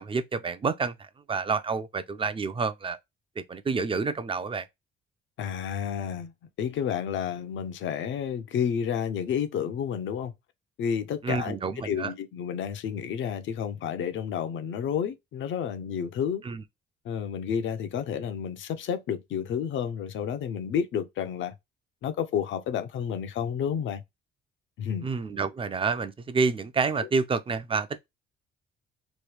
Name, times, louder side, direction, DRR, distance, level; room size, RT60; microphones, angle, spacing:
voice 1, 0.0-3.0 3.4-4.7 11.2-12.1 16.5-16.6 25.0-28.1, right 4 dB, 25° right, 0.5 m, -29 dB
voice 2, 5.4-6.3 6.6-10.3 10.8-11.6 11.8-16.4 17.0-21.5 22.0-24.0 24.8-25.1 27.0-27.1, left 8 dB, 70° left, 0.7 m, -30 dB
3.1 x 2.3 x 3.3 m
cardioid pair, 90°, 20 cm